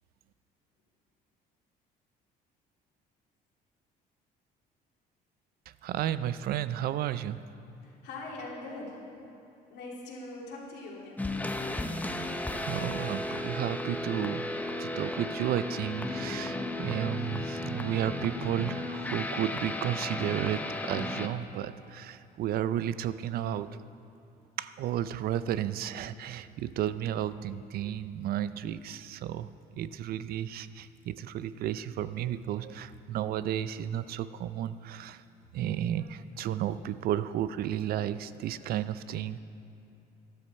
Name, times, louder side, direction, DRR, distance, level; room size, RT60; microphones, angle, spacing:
voice 1, 5.8-7.4 12.7-14.5 14.8-23.8 24.6-29.5 29.7-35.2 35.5-39.4, right 11 dB, 65° right, 14 dB, 0.4 m, -33 dB
voice 2, 7.8-9.0 9.7-11.3, left 2 dB, 80° left, -3 dB, 2.9 m, -42 dB
sound 1, 11.2-21.3, left 2 dB, 10° left, 0.7 m, -34 dB
13.0 x 11.5 x 4.2 m, 2.9 s
cardioid pair, 110°, 17 cm